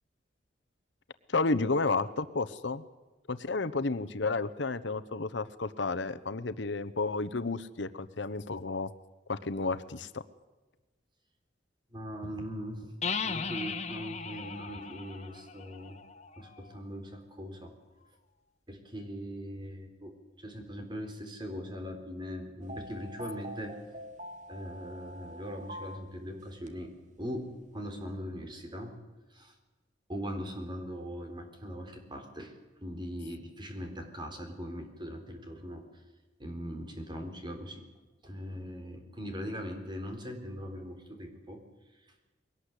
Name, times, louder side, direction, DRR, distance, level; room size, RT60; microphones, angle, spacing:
voice 1, 1.3-2.8 3.3-8.9 9.3-10.2, left 3 dB, 80° left, 12 dB, 1.0 m, -31 dB
voice 2, 11.9-12.9 13.2-16.0 16.4-17.7 18.7-20.1 20.4-23.7 24.5-26.9 27.2-29.0 29.3-29.5 30.1-32.5 32.8-35.8 36.4-37.8 38.2-41.6, equal, 25° right, 5 dB, 3.8 m, -40 dB
sound 1, 13.0-16.7, left 5 dB, 40° left, 1.5 m, -37 dB
sound 2, 22.6-26.8 27.2-27.3 27.6-28.0, equal, 40° right, 2.0 m, -45 dB
22.0 x 18.0 x 8.3 m, 1.2 s
head